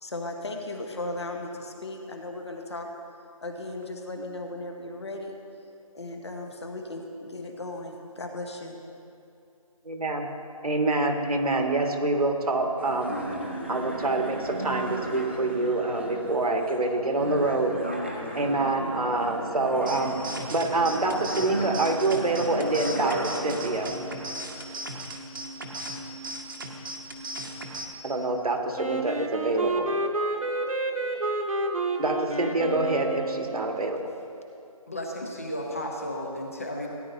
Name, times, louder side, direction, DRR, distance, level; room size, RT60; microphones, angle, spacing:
voice 1, 0.0-2.9 3.4-5.4 5.9-8.8, left 2 dB, 45° left, 3 dB, 1.2 m, -36 dB
voice 2, 9.9-10.3 10.6-13.1 13.7-17.8 18.4-20.2 20.5-23.9 28.0-29.9 32.0-34.0, right 2 dB, 85° right, 3 dB, 1.6 m, -26 dB
sound 1, 12.8-24.7, right 1 dB, 20° right, 0.5 m, -35 dB
sound 2, 19.9-27.9, right 1 dB, 35° right, 1.0 m, -37 dB
Wind instrument woodwind instrument, 28.7-33.8, right 2 dB, 65° right, 1.2 m, -29 dB
voice 3, 34.9-36.9, left 1 dB, 25° left, 1 dB, 0.8 m, -33 dB
17.0 x 10.0 x 2.7 m, 2.6 s
figure-of-eight pair, 175°, 19 cm